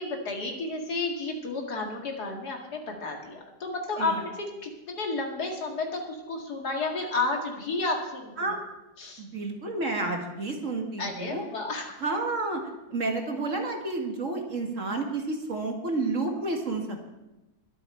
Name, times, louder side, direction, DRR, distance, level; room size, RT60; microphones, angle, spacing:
voice 1, 0.0-8.5 9.0-9.2 11.0-11.9, left 3 dB, 65° left, 2 dB, 2.7 m, -32 dB
voice 2, 9.2-11.4 12.0-12.6 12.9-16.8, right 3 dB, 45° right, 3 dB, 2.0 m, -30 dB
22.0 x 8.4 x 4.4 m, 1.0 s
omnidirectional pair, 1.9 m